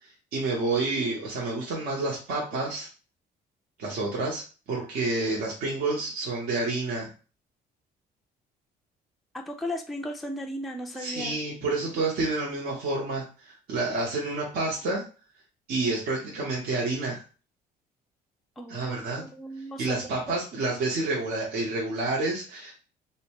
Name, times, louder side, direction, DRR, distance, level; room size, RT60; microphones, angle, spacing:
voice 1, 0.3-2.9 3.8-7.1 11.0-15.0 15.7-17.2 18.7-19.2 19.8-22.8, right 3 dB, 65° right, -3 dB, 0.8 m, -29 dB
voice 2, 9.3-11.4 18.6-20.1, equal, ahead, 2 dB, 0.3 m, -36 dB
2.6 x 2.1 x 2.9 m, 0.35 s
cardioid pair, 110°, 17 cm